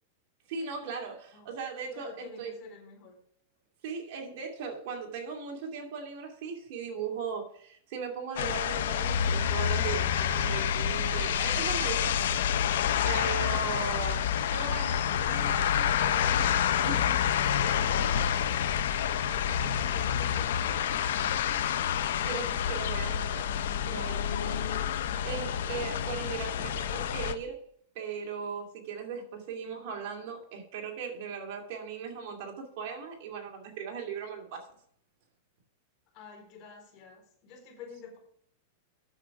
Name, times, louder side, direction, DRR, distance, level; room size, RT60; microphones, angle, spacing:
voice 1, 0.5-2.5 3.8-12.3 13.1-17.3 22.2-23.5 23.8-24.9 25.2-27.7 27.9-34.7, right 6 dB, 50° right, 1 dB, 2.5 m, -38 dB
voice 2, 1.9-3.1 19.2-21.4 36.1-38.2, left 5 dB, 40° left, 1 dB, 4.3 m, -49 dB
sound 1, 8.4-27.3, left 9 dB, 75° left, 0.8 m, -28 dB
9.0 x 7.3 x 5.9 m, 0.64 s
supercardioid pair, 150°, 0 cm